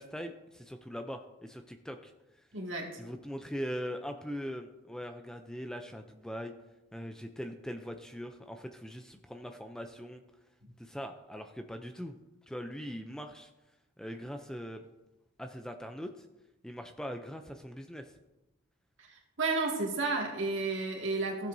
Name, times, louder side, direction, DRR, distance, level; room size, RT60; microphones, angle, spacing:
voice 1, 0.0-2.1 2.4-2.5 3.0-6.5 6.9-10.2 10.8-12.1 12.5-13.5 14.0-14.8 15.4-16.3 16.6-18.1, equal, 5° left, 6 dB, 0.4 m, -41 dB
voice 2, 2.5-3.0 19.1-21.5, right 3 dB, 65° right, -1 dB, 2.1 m, -32 dB
16.0 x 7.4 x 2.7 m, 1.0 s
head